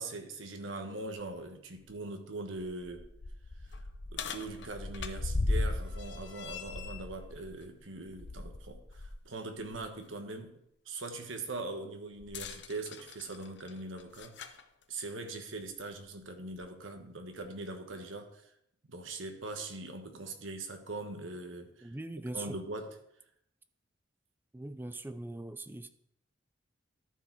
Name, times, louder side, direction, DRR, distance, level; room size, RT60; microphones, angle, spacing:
voice 1, 0.0-3.0 3.7-3.8 4.1-10.5 10.8-14.6 14.9-18.5 18.9-21.9 22.3-22.9, right 2 dB, 75° right, 5 dB, 1.3 m, -41 dB
sound 1, 1.2-1.3 1.8-1.9 2.5-9.2 9.6-9.8 12.2-14.6 15.6-15.7 16.5-16.6, left 2 dB, 60° left, 0.7 m, -37 dB
voice 2, 21.8-22.6 24.5-25.9, right 2 dB, 10° right, 11 dB, 0.4 m, -41 dB
13.5 x 4.8 x 4.6 m, 0.75 s
head